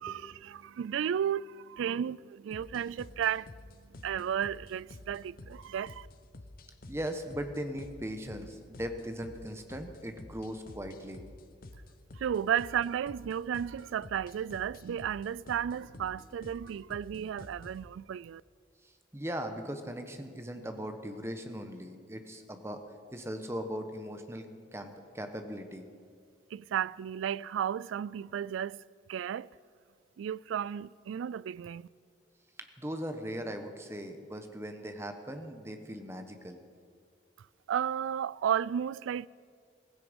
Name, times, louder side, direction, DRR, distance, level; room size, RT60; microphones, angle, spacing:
voice 1, 0.0-3.5 4.0-6.1 12.2-18.4 26.5-28.8 29.1-29.5 30.2-31.9 37.7-39.3, right 9 dB, 90° right, 0.3 m, -33 dB
sound 1, 2.5-17.9, left 2 dB, 50° left, 0.8 m, -50 dB
voice 2, 6.9-11.2 18.8-22.8 23.1-25.9 32.8-36.6, equal, 15° right, 1.1 m, -39 dB
16.0 x 16.0 x 5.3 m
head